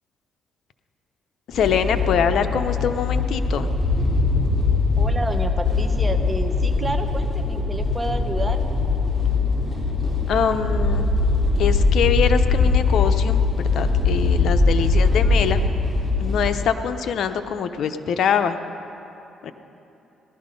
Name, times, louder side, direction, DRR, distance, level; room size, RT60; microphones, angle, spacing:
voice 1, 1.5-3.7 10.3-11.1 11.6-15.6 16.2-18.6 19.4-19.5, left 7 dB, 70° left, 9 dB, 0.7 m, -24 dB
sound 1, 1.5-16.5, left 3 dB, 10° left, 3.7 m, -21 dB
voice 2, 5.0-8.6 14.8-15.2, right 1 dB, 10° right, 4 dB, 1.2 m, -30 dB
17.5 x 12.0 x 5.3 m, 2.9 s
cardioid pair, 90°, 0 cm